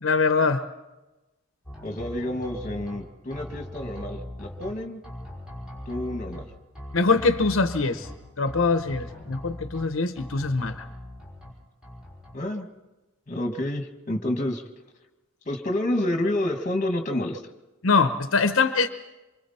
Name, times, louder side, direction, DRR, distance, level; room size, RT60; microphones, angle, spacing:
voice 1, 0.0-0.6 6.9-8.1 8.4-10.8 17.8-18.9, left 4 dB, 80° left, 9 dB, 0.9 m, -23 dB
sound 1, 1.7-3.0 3.3-4.7 5.0-6.4 6.8-8.1 8.5-9.9 10.2-11.5 11.8-12.3, left 1 dB, 5° right, 5.6 m, -40 dB
voice 2, 1.8-5.0 5.9-6.5 12.3-12.7 13.3-14.6 15.5-17.4, left 1 dB, 35° left, 6 dB, 1.8 m, -29 dB
26.0 x 24.5 x 4.3 m, 1.1 s
head